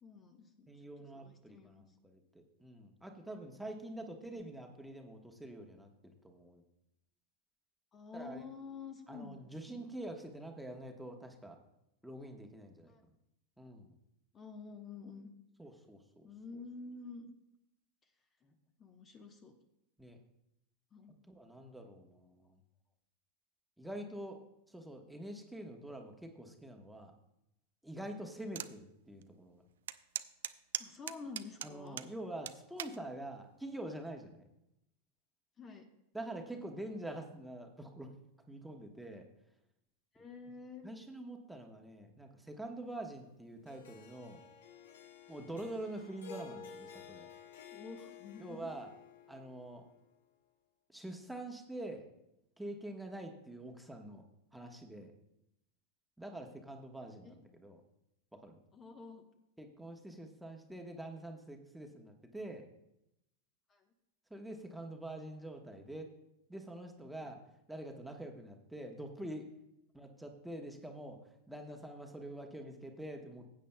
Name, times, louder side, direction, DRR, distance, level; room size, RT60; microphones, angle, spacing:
voice 1, 0.0-0.7 1.1-1.8 4.0-4.1 7.9-9.9 12.8-13.0 14.3-15.3 16.2-17.3 18.4-19.5 20.9-21.4 30.8-32.0 35.6-35.9 40.1-40.9 46.3-46.7 47.7-48.7 57.2-57.3 58.7-59.2 63.7-63.8 67.2-67.4, left 4 dB, 30° left, 5 dB, 1.0 m, -49 dB
voice 2, 0.7-6.6 8.1-8.4 9.1-11.6 12.0-12.9 13.6-13.9 15.6-16.3 20.0-20.2 21.3-22.5 23.8-24.4 24.7-27.1 27.8-29.6 31.6-34.5 36.1-38.1 38.5-39.3 40.8-44.4 45.3-47.3 48.4-48.9 49.3-49.9 50.9-52.1 52.6-54.2 54.5-55.1 56.2-57.8 58.3-58.6 59.6-62.7 64.3-66.1 66.5-67.4 67.7-69.5 69.9-71.2 71.5-73.5, right 1 dB, 5° right, 2 dB, 1.1 m, -46 dB
sound 1, 28.5-28.7 29.2-29.3 29.9-32.1 32.5-33.0 33.7-34.0, right 11 dB, 75° right, 0.4 m, -40 dB
Harp, 43.7-50.0, left 6 dB, 75° left, 1.0 m, -53 dB
15.5 x 8.4 x 2.3 m, 0.83 s
hypercardioid pair, 100°, 0 cm